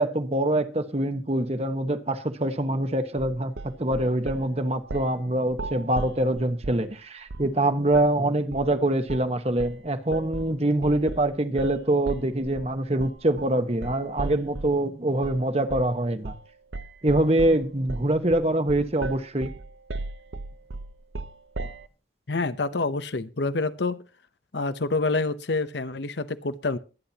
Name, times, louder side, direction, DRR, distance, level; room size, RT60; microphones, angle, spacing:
voice 1, 0.0-16.3 17.0-19.5 21.6-21.7, right 1 dB, 35° right, 1.2 m, -24 dB
sound 1, 3.2-4.5 4.9-5.2 5.5-6.9 7.3-7.6 7.9-8.1 8.5-8.8 9.1-9.3 9.6-14.8 15.2-15.4 15.7-16.0 16.2-16.5 16.7-21.9, right 3 dB, 85° right, 0.8 m, -36 dB
voice 2, 22.3-24.0 24.5-26.8, left 3 dB, 75° left, 0.9 m, -27 dB
22.5 x 9.9 x 2.9 m
head